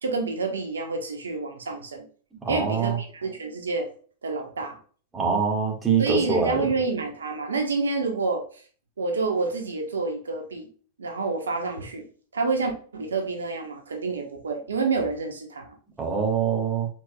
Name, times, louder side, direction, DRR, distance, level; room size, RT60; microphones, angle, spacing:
voice 1, 0.0-2.1 2.5-3.9 4.2-4.8 6.0-8.4 9.0-10.7 11.0-12.1 12.3-15.7, right 3 dB, 85° right, 3 dB, 1.1 m, -28 dB
voice 2, 2.4-3.0 5.1-6.7 16.0-16.9, right 6 dB, 15° right, -1 dB, 1.7 m, -24 dB
4.5 x 4.4 x 2.3 m, 0.42 s
hypercardioid pair, 100°, 0 cm